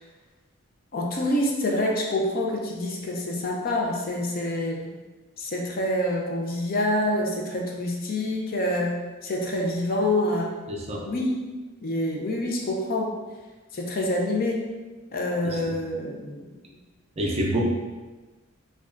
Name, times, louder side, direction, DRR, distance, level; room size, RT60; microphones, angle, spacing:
voice 1, 0.9-4.9 5.4-9.0 9.2-10.5 11.1-11.3 11.8-13.1 13.7-14.6 15.1-16.5, left 1 dB, 45° left, -1 dB, 0.5 m, -26 dB
voice 2, 10.7-11.0 15.4-15.6 17.2-17.6, right 1 dB, 30° right, -1 dB, 0.5 m, -27 dB
5.0 x 2.3 x 2.5 m, 1.2 s
head